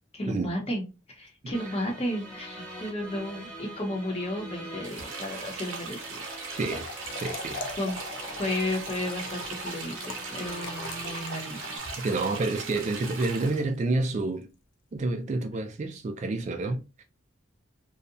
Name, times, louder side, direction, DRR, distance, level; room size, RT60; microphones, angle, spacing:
voice 1, 0.1-0.9 1.1-6.2 7.8-8.0 8.4-11.6, left 1 dB, 30° left, 0.7 m, -33 dB
sound 1, 1.5-11.8, right 1 dB, 5° left, 1.0 m, -43 dB
sound 2, 4.8-13.6, right 4 dB, 80° right, 0.6 m, -39 dB
Trickle dribble / Fill (with liquid), 6.7-13.9, left 3 dB, 70° left, 0.5 m, -42 dB
voice 2, 7.2-7.7 12.0-14.5 14.9-17.0, right 2 dB, 35° right, 0.3 m, -29 dB
2.6 x 2.1 x 2.5 m
head